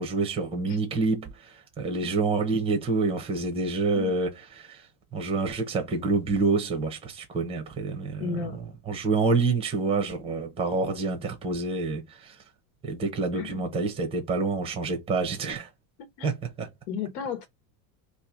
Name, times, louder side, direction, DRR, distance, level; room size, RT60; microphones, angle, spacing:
voice 1, 0.0-4.9 5.1-8.5 8.9-12.4 12.8-15.7 16.2-16.7, right 3 dB, 10° right, 0.7 m, -27 dB
voice 2, 8.2-8.6 13.3-13.7 16.0-16.3 16.9-17.5, left 6 dB, 70° left, 1.1 m, -34 dB
2.9 x 2.5 x 3.6 m
supercardioid pair, 150°, 48 cm